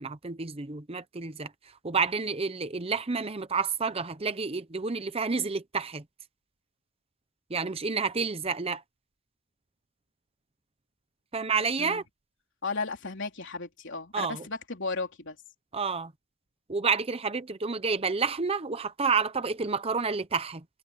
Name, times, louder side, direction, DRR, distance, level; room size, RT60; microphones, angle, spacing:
voice 1, 0.0-1.5 1.8-6.0 7.5-8.8 11.3-12.0 14.1-14.4 15.7-16.1 16.7-20.6, right 5 dB, 25° right, 0.7 m, -29 dB
voice 2, 12.6-15.4, left 3 dB, 55° left, 3.7 m, -34 dB
head